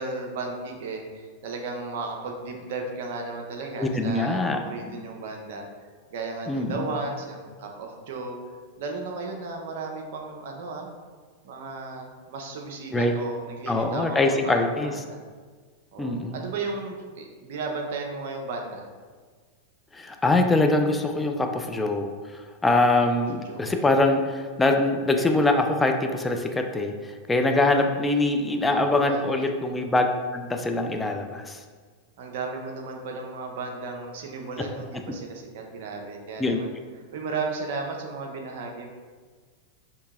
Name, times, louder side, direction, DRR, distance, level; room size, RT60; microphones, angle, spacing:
voice 1, 0.0-5.6 6.1-8.4 8.8-10.9 11.4-15.2 15.9-18.9 23.0-23.1 23.4-23.7 28.6-29.5 32.2-36.7 37.1-38.9, right 3 dB, 55° right, 2 dB, 0.5 m, -35 dB
voice 2, 3.8-4.6 4.9-5.1 6.5-6.9 12.9-13.1 13.7-14.9 16.0-16.4 19.9-30.1 30.3-31.6 36.4-36.6, left 2 dB, 10° left, 4 dB, 0.3 m, -23 dB
2.7 x 2.7 x 3.5 m, 1.5 s
figure-of-eight pair, 90°, 0 cm